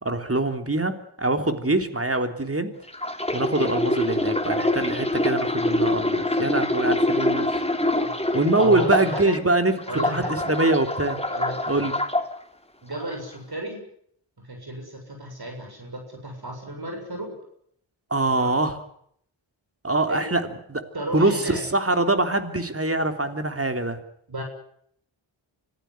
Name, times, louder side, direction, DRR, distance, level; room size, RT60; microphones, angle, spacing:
voice 1, 0.0-2.7 3.3-7.6 8.3-9.7 10.0-11.2 11.7-11.9 18.1-18.8 19.8-20.8 21.1-24.0, right 2 dB, 30° right, 8 dB, 3.4 m, -24 dB
sound 1, 2.9-9.4 9.8-12.3 12.9-13.1, left 1 dB, 10° left, 3.2 m, -25 dB
voice 2, 8.6-9.4 9.9-10.5 11.3-11.9 12.8-13.8 14.4-17.4 18.3-18.6 20.1-20.2 20.9-21.7 24.3-24.4, right 1 dB, 50° right, 3 dB, 7.3 m, -34 dB
25.5 x 15.5 x 9.7 m, 0.67 s
cardioid pair, 55°, 49 cm